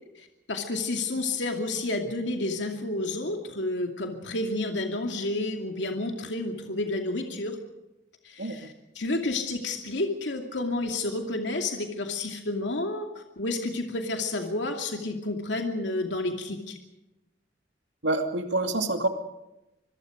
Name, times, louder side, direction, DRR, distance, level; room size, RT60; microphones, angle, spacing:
voice 1, 0.2-7.6 8.2-16.8, left 2 dB, 80° left, 3 dB, 2.5 m, -30 dB
voice 2, 18.0-19.1, right 2 dB, 80° right, 5 dB, 2.7 m, -26 dB
26.0 x 22.0 x 5.2 m, 0.95 s
head